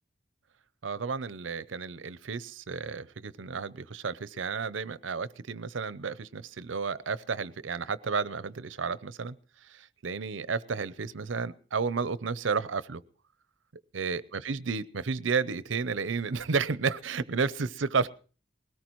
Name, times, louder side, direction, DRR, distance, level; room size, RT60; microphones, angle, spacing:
voice 1, 0.8-9.3 9.7-13.0 13.9-18.1, right 5 dB, 80° right, 17 dB, 0.6 m, -32 dB
20.5 x 17.5 x 3.1 m, 0.38 s
head